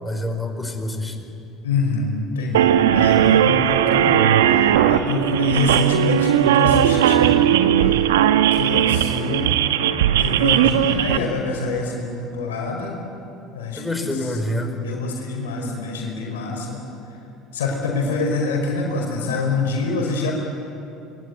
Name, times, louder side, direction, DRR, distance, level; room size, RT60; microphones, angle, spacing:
voice 1, 0.0-1.2 13.7-14.7, left 1 dB, 10° left, 5 dB, 4.6 m, -27 dB
voice 2, 1.6-7.4 8.5-9.5 10.2-13.0 13.5-14.4 14.8-16.8 17.5-20.3, left 3 dB, 80° left, 0 dB, 5.4 m, -25 dB
sound 1, 2.5-11.2, right 10 dB, 80° right, 1.0 m, -17 dB
26.5 x 22.5 x 9.5 m, 2.8 s
hypercardioid pair, 70°, 0 cm